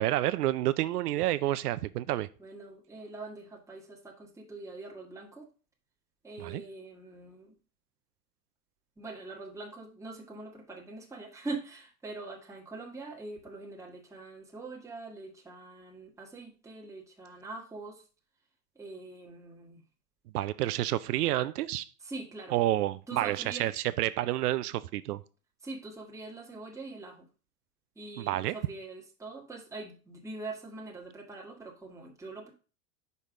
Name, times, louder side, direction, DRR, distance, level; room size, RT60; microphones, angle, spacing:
voice 1, 0.0-2.3 6.4-6.6 20.3-21.9 22.5-25.2 28.2-28.6, right 14 dB, 80° right, 0.6 m, -29 dB
voice 2, 2.4-5.5 6.2-7.5 9.0-18.0 18.7-19.8 22.0-22.6 23.1-23.7 25.6-27.3 27.9-32.5, right 3 dB, 5° right, 1.3 m, -43 dB
5.5 x 4.6 x 4.8 m
hypercardioid pair, 110°, 46 cm